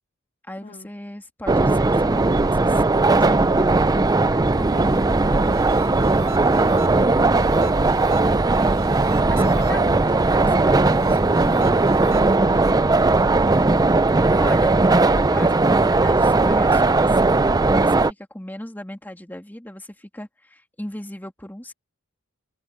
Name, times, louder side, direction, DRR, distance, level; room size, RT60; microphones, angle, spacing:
voice 1, 0.5-5.3 9.3-11.9 13.5-13.8 14.2-14.7 15.1-21.7, left 1 dB, 10° left, 2.4 m, -37 dB
sound 1, 1.5-18.1, right 3 dB, 15° right, 0.4 m, -18 dB
sound 2, 4.5-12.4, right 3 dB, 65° right, 7.0 m, -41 dB
voice 2, 12.4-13.3, left 2 dB, 30° left, 1.6 m, -44 dB
open air
head